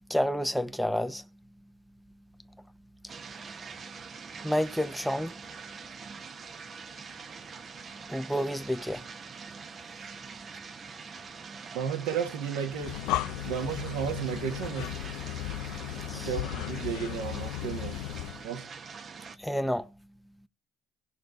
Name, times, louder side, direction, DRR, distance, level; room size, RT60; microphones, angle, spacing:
voice 1, 0.1-1.3 2.6-2.7 3.0-3.4 4.4-5.4 8.1-9.2 16.1-16.3 19.4-19.9, equal, ahead, 1.0 m, -30 dB
sound 1, 3.1-19.4, right 5 dB, 45° right, 1.1 m, -44 dB
voice 2, 11.7-13.2 13.4-14.9 16.1-18.0 18.4-18.7, right 7 dB, 75° right, 2.0 m, -33 dB
Breathing, 12.7-18.5, left 14 dB, 70° left, 0.6 m, -35 dB
17.0 x 6.5 x 4.2 m
hypercardioid pair, 60°, 0 cm